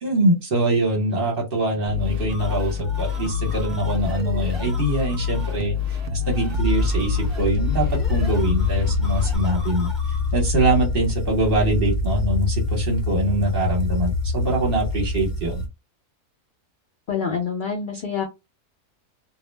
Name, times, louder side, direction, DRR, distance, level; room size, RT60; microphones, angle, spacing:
voice 1, 0.0-9.9 10.3-15.6, right 1 dB, 45° right, 0.9 m, -23 dB
sound 1, 1.9-9.4, left 7 dB, 70° right, 0.9 m, -27 dB
sound 2, 2.2-10.5, equal, ahead, 0.5 m, -41 dB
sound 3, 6.5-15.7, left 2 dB, 50° left, 0.9 m, -25 dB
voice 2, 17.1-18.2, left 6 dB, 70° left, 0.4 m, -26 dB
2.4 x 2.1 x 3.1 m
omnidirectional pair, 1.5 m